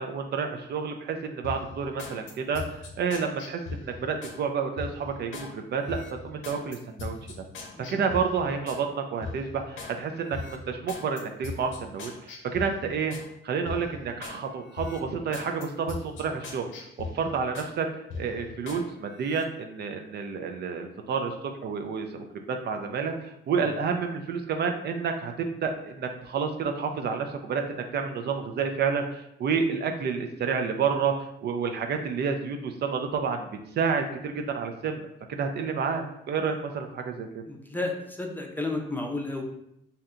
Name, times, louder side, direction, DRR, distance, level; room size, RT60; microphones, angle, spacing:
voice 1, 0.0-7.4 7.9-13.2 13.4-16.7 17.0-33.5 33.8-35.0 35.3-37.4, right 5 dB, 55° right, 5 dB, 0.4 m, -30 dB
sound 1, 1.4-4.4 4.8-5.5 5.9-8.8 9.2-9.9 10.3-13.3 13.7-14.4 14.7-17.7 18.1-18.8 19.2-19.4, left 3 dB, 80° left, 0.7 m, -40 dB
voice 2, 37.5-39.4, left 2 dB, 10° left, 2 dB, 0.5 m, -33 dB
2.7 x 2.2 x 3.7 m, 0.79 s
cardioid pair, 90°, 20 cm